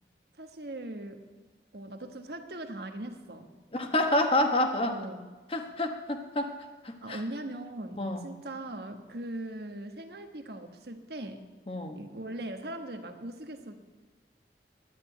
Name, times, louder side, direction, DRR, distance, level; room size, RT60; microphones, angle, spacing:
voice 1, 0.4-1.3 1.7-3.5 4.9-5.3 7.0-11.5 11.9-13.7, right 1 dB, 65° right, 6 dB, 1.3 m, -40 dB
voice 2, 3.7-4.9 5.5-6.5 6.8-7.2 8.0-8.2 11.7-12.0, left 1 dB, 30° left, 5 dB, 1.1 m, -28 dB
11.0 x 9.9 x 9.0 m, 1.3 s
head